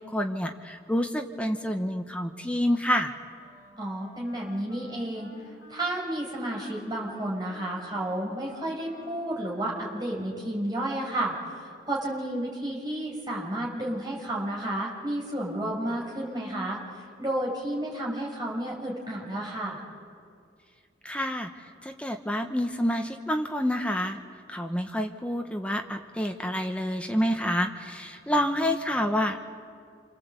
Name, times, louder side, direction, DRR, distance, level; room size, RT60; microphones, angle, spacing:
voice 1, 0.0-3.1 21.0-21.5 21.8-24.2 24.5-29.4, equal, 5° left, 5 dB, 1.1 m, -28 dB
Wind instrument woodwind instrument, 3.3-10.7, left 1 dB, 70° left, 7.6 m, -51 dB
voice 2, 3.8-19.8, right 1 dB, 20° right, -3 dB, 6.3 m, -32 dB
28.5 x 25.5 x 8.3 m, 2.3 s
head